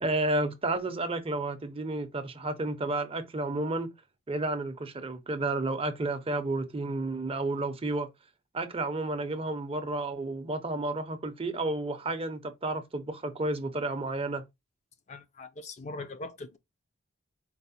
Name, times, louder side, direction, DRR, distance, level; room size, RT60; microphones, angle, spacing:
voice 1, 0.0-3.9 4.3-8.1 8.5-14.4, right 2 dB, 25° right, 0.6 m, -31 dB
voice 2, 15.1-16.6, left 2 dB, 30° left, 0.4 m, -41 dB
4.7 x 2.1 x 4.0 m
head